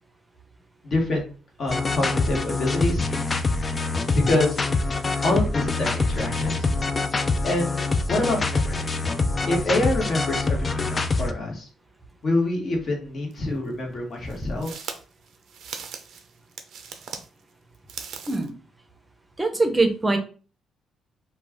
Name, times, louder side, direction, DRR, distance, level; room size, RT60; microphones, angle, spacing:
voice 1, 0.8-1.3 1.6-3.1 4.1-4.6 5.2-6.7 7.4-7.8 8.1-8.9 9.5-11.7 12.2-14.9, left 2 dB, 50° left, 0 dB, 1.1 m, -26 dB
sound 1, 1.7-11.3, left 3 dB, 30° left, 0.3 m, -25 dB
sound 2, 13.3-13.4 14.3-17.3 17.7-18.5, right 6 dB, 70° right, 0.4 m, -38 dB
voice 2, 19.4-20.2, right 2 dB, 15° right, 5 dB, 0.6 m, -22 dB
2.3 x 2.3 x 3.5 m, 0.37 s
cardioid pair, 90°, 0 cm